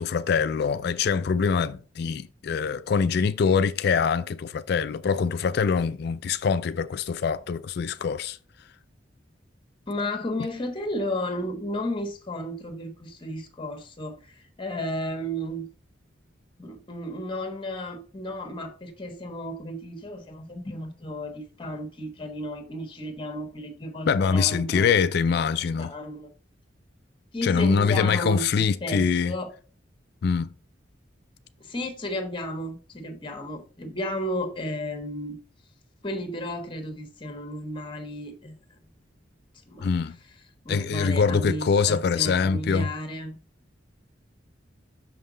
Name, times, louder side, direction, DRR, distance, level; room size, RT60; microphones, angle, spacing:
voice 1, 0.0-8.4 24.1-25.9 27.4-29.3 30.2-30.5 39.8-40.2 40.7-42.9, left 6 dB, 60° left, 0.3 m, -24 dB
voice 2, 9.9-15.7 16.6-25.0 25.8-26.3 27.3-29.5 31.6-35.4 36.0-38.8 39.7-39.9 40.6-43.4, left 1 dB, 25° left, 1.3 m, -33 dB
6.4 x 5.6 x 3.9 m
head